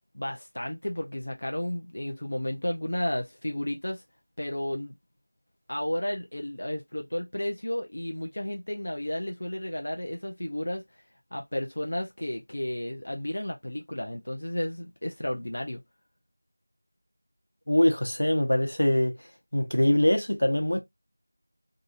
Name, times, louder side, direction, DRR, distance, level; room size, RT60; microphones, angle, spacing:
voice 1, 0.1-4.0 4.4-4.9 5.7-11.0 11.3-15.8, left 1 dB, 45° left, 0.5 m, -32 dB
voice 2, 17.7-19.2 19.5-20.8, left 1 dB, 75° left, 0.9 m, -23 dB
3.7 x 2.7 x 2.4 m
figure-of-eight pair, 180°, 0 cm